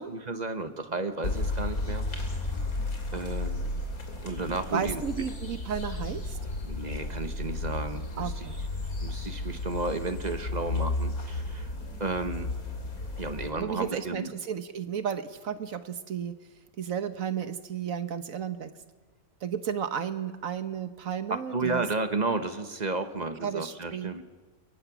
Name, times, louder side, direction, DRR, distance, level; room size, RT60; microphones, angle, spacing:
voice 1, 0.1-2.1 3.1-3.6 4.2-5.0 6.6-8.5 9.0-11.7 12.0-12.5 13.2-14.3 21.5-24.2, right 3 dB, 30° right, 9 dB, 1.2 m, -32 dB
sound 1, 1.2-13.5, left 2 dB, 70° left, 3.2 m, -33 dB
voice 2, 4.7-6.4 8.2-8.5 13.6-16.4 16.8-18.7 19.4-21.8 23.4-24.2, right 8 dB, 65° right, 11 dB, 1.4 m, -33 dB
28.0 x 23.0 x 6.1 m, 1.3 s
omnidirectional pair, 1.6 m